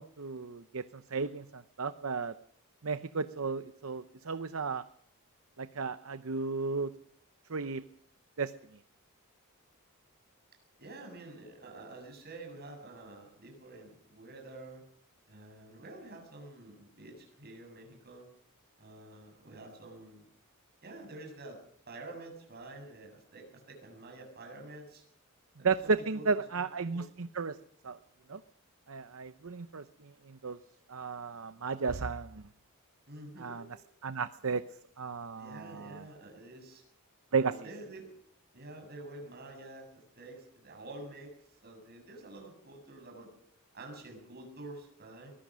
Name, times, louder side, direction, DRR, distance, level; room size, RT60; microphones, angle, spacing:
voice 1, 0.0-2.3 2.8-4.8 5.6-6.9 7.5-7.8 8.4-8.5 25.6-27.6 27.8-28.0 28.3-28.4 28.9-30.6 30.9-32.4 33.4-33.6 34.0-34.6 35.0-36.0 37.3-37.5, right 4 dB, 65° right, 12 dB, 0.8 m, -34 dB
voice 2, 10.8-14.8 15.3-18.3 18.8-20.3 20.8-21.6 21.9-25.0 25.6-26.3 26.7-27.0 33.1-33.7 35.4-36.8 37.3-38.1 38.5-43.3 43.7-45.3, right 2 dB, 45° right, 2 dB, 7.6 m, -48 dB
23.0 x 20.0 x 6.3 m, 0.65 s
head